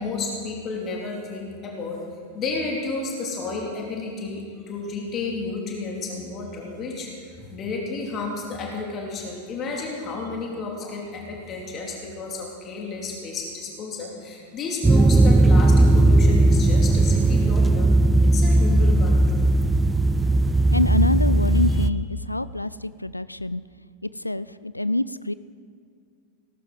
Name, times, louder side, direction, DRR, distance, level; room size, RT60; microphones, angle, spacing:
voice 1, 0.0-2.0 2.3-18.0 18.3-19.5 21.7-21.8, left 3 dB, 30° left, -1 dB, 2.7 m, -32 dB
sound 1, 14.8-21.9, right 2 dB, 10° right, 0.4 m, -17 dB
voice 2, 20.7-23.6 24.0-25.3, left 1 dB, 85° left, 16 dB, 0.3 m, -26 dB
18.0 x 14.0 x 4.0 m, 2.3 s
figure-of-eight pair, 90°, 0 cm